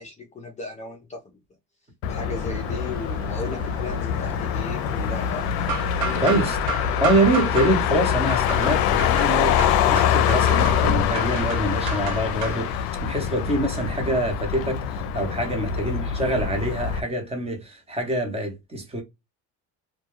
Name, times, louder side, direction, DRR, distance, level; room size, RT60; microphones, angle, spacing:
voice 1, 0.0-1.4 2.1-5.5 6.0-6.4 15.5-15.8, left 3 dB, 20° left, 0.5 m, -36 dB
Motor vehicle (road), 2.0-17.0, left 9 dB, 70° left, 0.5 m, -24 dB
sound 1, 2.3-12.8, right 5 dB, 75° right, 0.9 m, -35 dB
voice 2, 6.1-6.6 7.0-19.0, right 1 dB, 15° right, 0.8 m, -25 dB
2.2 x 2.2 x 3.0 m
cardioid pair, 125°, 35 cm